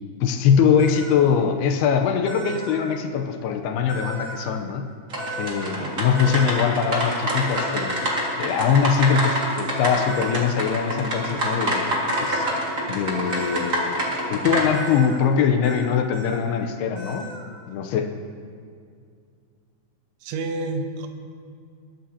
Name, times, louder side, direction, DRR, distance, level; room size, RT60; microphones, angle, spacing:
voice 1, 0.2-4.9 5.4-8.0 8.4-12.5 12.9-17.3 17.7-18.1, left 7 dB, 80° left, 4 dB, 2.5 m, -22 dB
sound 1, 0.8-1.1 2.3-2.8 3.9-4.4 5.2-5.7 6.1-6.6 7.5-8.2 9.0-9.2 10.1-10.5 12.1-12.6 13.3-13.7 14.7-15.2 15.6-15.9 16.1-16.4 17.0-17.5, right 1 dB, 30° right, 1.4 m, -36 dB
sound 2, 5.1-14.6, equal, 45° right, 1.1 m, -27 dB
voice 2, 20.2-21.1, right 2 dB, 80° right, 5 dB, 3.3 m, -29 dB
21.5 x 14.0 x 2.9 m, 2.2 s
omnidirectional pair, 5.1 m